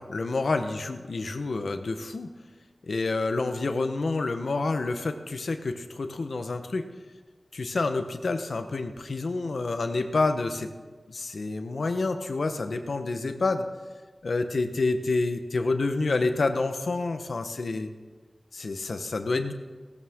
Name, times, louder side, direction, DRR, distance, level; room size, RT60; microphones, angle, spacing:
voice 1, 0.0-2.3 2.9-6.9 7.5-10.7 11.1-13.6 14.2-17.9 18.5-19.5, left 3 dB, 90° left, 7 dB, 1.0 m, -28 dB
17.0 x 13.0 x 3.7 m, 1.3 s
wide cardioid pair, 70°, 0 cm